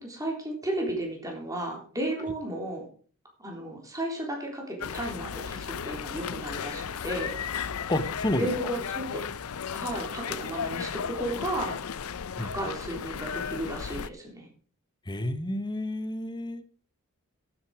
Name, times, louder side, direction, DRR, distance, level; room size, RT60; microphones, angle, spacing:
voice 1, 0.0-2.9 3.4-7.3 8.3-9.2 9.7-11.8 12.4-14.5, right 1 dB, 15° right, 0 dB, 3.6 m, -34 dB
sound 1, 4.8-14.1, left 7 dB, 75° left, 0.6 m, -35 dB
voice 2, 7.9-8.5 12.4-12.5 15.1-16.6, left 1 dB, 20° left, 11 dB, 1.1 m, -30 dB
12.0 x 9.0 x 4.9 m, 0.42 s
head